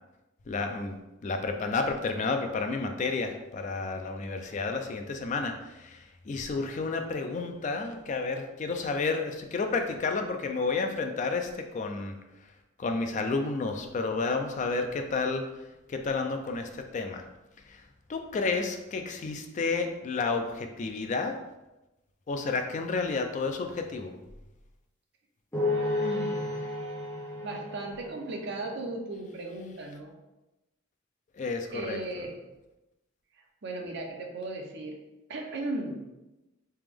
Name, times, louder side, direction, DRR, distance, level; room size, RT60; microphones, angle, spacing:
voice 1, 0.5-0.9 1.2-12.2 12.8-15.6 15.9-17.2 17.6-17.8 18.1-21.4 22.3-24.1 31.3-32.0, left 4 dB, 35° left, 5 dB, 0.3 m, -31 dB
sound 1, 25.5-28.8, left 2 dB, 10° left, 0.9 m, -32 dB
voice 2, 26.0-26.5 27.4-30.2 31.7-32.3 33.6-35.0 35.3-36.0, right 2 dB, 55° right, 2 dB, 0.6 m, -36 dB
3.4 x 2.9 x 3.4 m, 1.0 s
head